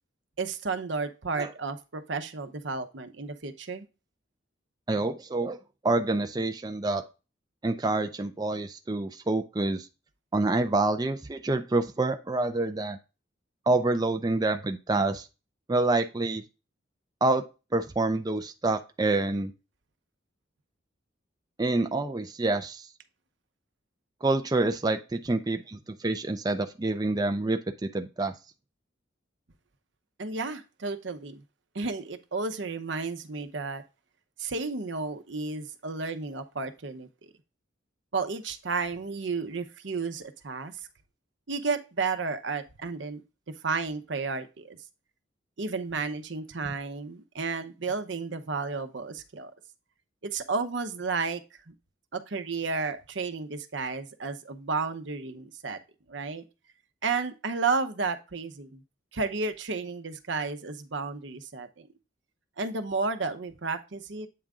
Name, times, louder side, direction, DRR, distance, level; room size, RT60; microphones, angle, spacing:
voice 1, 0.4-3.8 30.2-31.4 31.7-33.8 34.4-37.3 38.1-40.7 41.5-43.2 43.6-44.8 45.6-49.5 50.2-51.4 51.7-51.8 52.1-55.8 56.1-56.4 57.0-58.8 59.1-61.9 62.6-64.3, right 4 dB, 70° right, 9 dB, 0.8 m, -32 dB
voice 2, 4.9-5.6 5.8-7.0 7.6-9.9 10.3-13.0 13.7-15.3 15.7-16.4 17.2-17.5 17.7-19.5 21.6-22.9 24.2-28.3, right 2 dB, 20° right, 6 dB, 0.5 m, -27 dB
8.6 x 3.6 x 3.6 m, 0.29 s
head